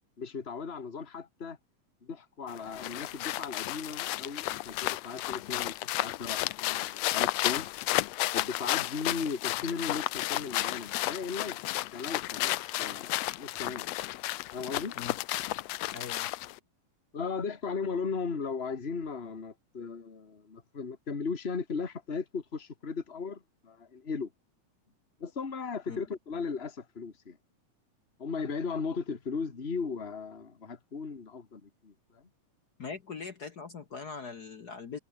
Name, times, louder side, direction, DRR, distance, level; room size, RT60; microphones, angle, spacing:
voice 1, 0.2-1.6 2.0-7.7 8.3-13.9 14.5-14.9 17.1-24.3 25.2-27.4 28.2-32.2, left 5 dB, 20° left, 2.1 m, -37 dB
sound 1, 2.5-16.6, left 17 dB, 80° left, 1.5 m, -33 dB
voice 2, 15.9-16.3 25.9-26.0 32.8-35.0, left 5 dB, 65° left, 1.0 m, -41 dB
omnidirectional pair, 3.8 m